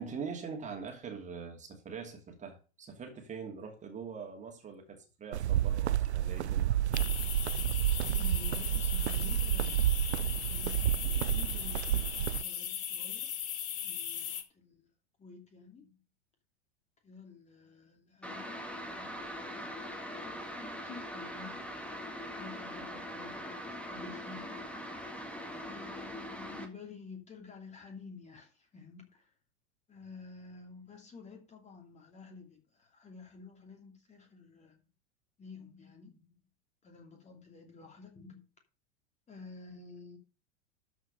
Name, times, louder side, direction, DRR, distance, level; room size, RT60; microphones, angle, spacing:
voice 1, 0.0-6.7, right 5 dB, 20° right, 2.6 m, -43 dB
sound 1, 5.3-12.4, right 12 dB, 75° right, 0.5 m, -30 dB
sound 2, 6.9-14.4, left 9 dB, 50° left, 1.7 m, -38 dB
voice 2, 8.1-9.8 10.4-12.1 12.4-13.3 13.8-14.9 15.2-16.0 17.0-21.7 22.4-23.6 23.8-24.6 25.5-29.3 29.9-34.8 35.4-36.4 36.8-38.4 39.3-40.2, left 4 dB, 20° left, 2.8 m, -51 dB
sound 3, 18.2-26.7, equal, 5° left, 1.8 m, -42 dB
12.5 x 5.0 x 5.2 m
figure-of-eight pair, 90°, 34 cm